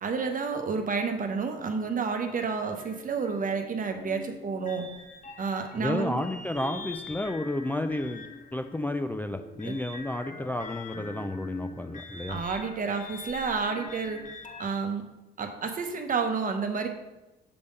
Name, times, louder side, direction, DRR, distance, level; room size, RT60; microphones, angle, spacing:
voice 1, 0.0-4.9 5.4-6.2 9.6-9.7 12.3-14.2 14.6-15.0 15.4-16.9, right 5 dB, 45° right, 5 dB, 1.0 m, -30 dB
sound 1, 2.8-14.7, left 4 dB, 40° left, 1.0 m, -43 dB
voice 2, 5.8-8.2 8.5-12.4, left 1 dB, 10° left, 7 dB, 0.4 m, -31 dB
6.9 x 3.4 x 5.3 m, 1.0 s
cardioid pair, 90°, 20 cm